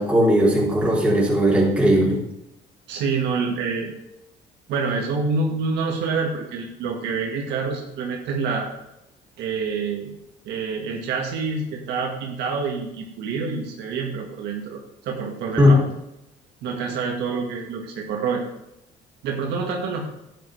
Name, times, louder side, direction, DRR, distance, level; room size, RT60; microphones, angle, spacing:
voice 1, 0.0-2.2 15.6-15.7, equal, 5° right, -6 dB, 3.7 m, -18 dB
voice 2, 2.9-3.9 4.7-8.7 9.4-10.1 10.5-15.8 16.6-18.4 19.2-20.1, right 4 dB, 80° right, 1 dB, 1.7 m, -27 dB
11.0 x 8.9 x 3.3 m, 0.87 s
cardioid pair, 110°, 17 cm